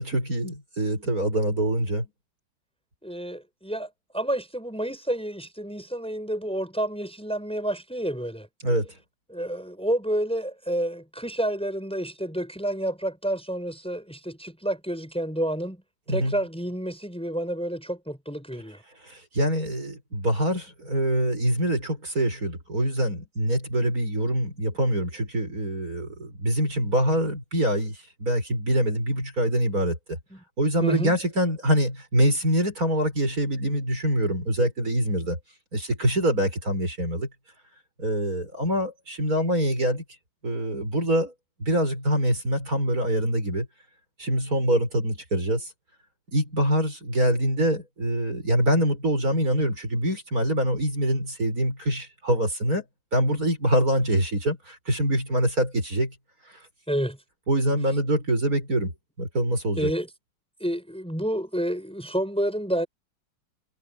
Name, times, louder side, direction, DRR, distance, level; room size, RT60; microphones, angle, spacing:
voice 1, 0.0-2.1 8.6-8.9 16.1-16.3 19.1-30.2 30.6-35.4 35.7-37.3 38.0-40.0 40.4-41.3 41.6-43.7 44.2-45.7 46.3-52.8 53.1-56.1 57.5-58.9 59.2-59.9, right 1 dB, 45° right, 7.4 m, -25 dB
voice 2, 3.0-8.5 9.3-15.8 16.1-18.8 30.3-30.4 30.8-31.1 56.9-57.2 59.8-60.1 60.6-62.9, right 1 dB, 5° left, 6.2 m, -29 dB
omnidirectional pair, 2.1 m